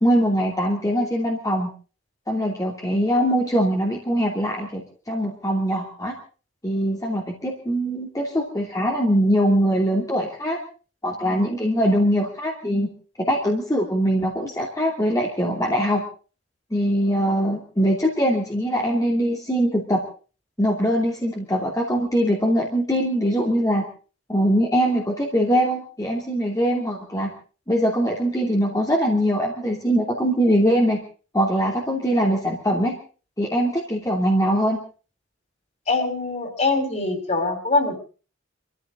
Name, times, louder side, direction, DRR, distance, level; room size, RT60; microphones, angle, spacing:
voice 1, 0.0-1.7 2.3-6.1 6.6-10.6 11.0-12.9 13.3-16.0 16.7-20.0 20.6-23.8 24.3-27.3 27.7-31.0 31.3-32.9 33.4-34.8, equal, 20° left, -1 dB, 2.9 m, -22 dB
voice 2, 35.9-37.9, left 3 dB, 35° left, 6 dB, 5.3 m, -23 dB
25.5 x 15.0 x 3.8 m, 0.37 s
head